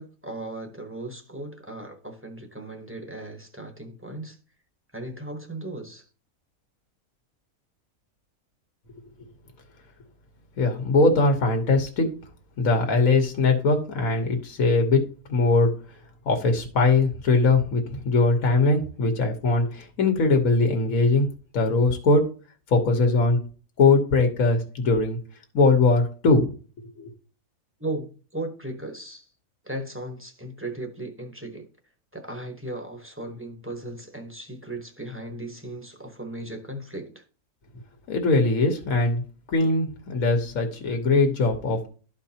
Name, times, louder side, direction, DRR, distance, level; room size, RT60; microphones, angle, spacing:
voice 1, 0.0-4.4 4.9-6.1 27.8-29.3 29.6-31.7 32.1-37.2 39.6-39.7, right 1 dB, 10° right, 0.8 m, -36 dB
voice 2, 10.6-12.1 12.6-15.7 16.2-21.3 21.5-22.3 22.7-23.4 23.8-25.2 25.5-26.5 26.8-27.1 38.1-39.2 39.5-41.8, left 3 dB, 70° left, 1.5 m, -21 dB
12.5 x 4.5 x 2.8 m
omnidirectional pair, 1.5 m